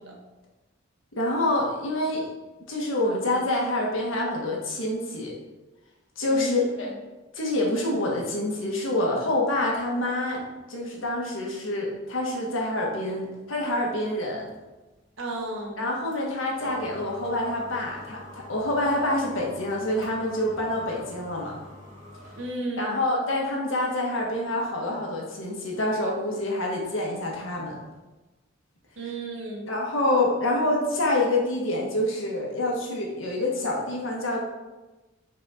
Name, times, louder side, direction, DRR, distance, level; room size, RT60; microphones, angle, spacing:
voice 1, 1.1-2.3 2.7-5.3 6.2-6.9 7.3-10.4 10.7-14.5 15.8-21.6 22.8-27.8 29.7-34.4, left 1 dB, 85° left, -1 dB, 1.6 m, -27 dB
voice 2, 6.3-6.8 15.2-15.8 22.4-23.0 29.0-29.7, right 2 dB, 75° right, -1 dB, 1.5 m, -33 dB
sound 1, 13.5-22.6, equal, 40° right, 1.5 m, -46 dB
5.8 x 4.6 x 4.2 m, 1.1 s
head